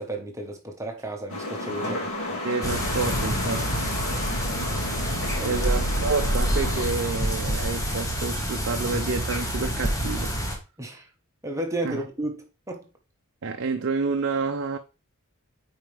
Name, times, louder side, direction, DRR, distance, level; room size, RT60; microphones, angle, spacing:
voice 1, 0.0-2.4 5.4-5.6 10.8-11.1 11.4-12.9, right 1 dB, 15° right, 1.1 m, -33 dB
sound 1, 1.3-6.8, left 1 dB, 65° left, 2.7 m, -33 dB
voice 2, 2.4-3.7 5.4-10.3 11.8-12.0 13.4-14.8, right 4 dB, 55° right, 0.5 m, -29 dB
sound 2, 2.6-10.6, equal, 15° left, 1.4 m, -27 dB
9.2 x 4.5 x 3.3 m
head